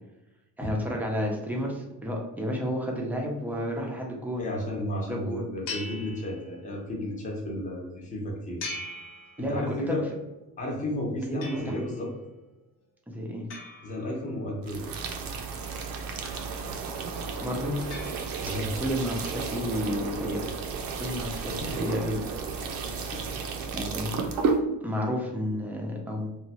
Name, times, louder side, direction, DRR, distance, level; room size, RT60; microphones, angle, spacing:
voice 1, 0.6-4.4 5.1-5.4 9.4-10.0 11.3-11.8 13.1-13.5 17.4-17.9 18.8-20.5 21.0-22.2 23.7-24.1 24.8-26.3, equal, 5° right, -1 dB, 0.5 m, -31 dB
voice 2, 4.4-8.6 9.4-10.0 10.6-12.1 13.8-14.8 18.4-18.7 21.6-21.9 23.1-23.4, left 1 dB, 20° left, -2 dB, 0.8 m, -33 dB
sound 1, 5.7-6.9 8.6-9.9 11.4-12.1 13.5-14.6 16.2-16.9 17.9-18.8, left 2 dB, 65° left, 0.7 m, -42 dB
sound 2, 14.6-24.6, right 5 dB, 75° right, 0.6 m, -33 dB
2.9 x 2.2 x 2.8 m, 1.0 s
cardioid pair, 125°, 35 cm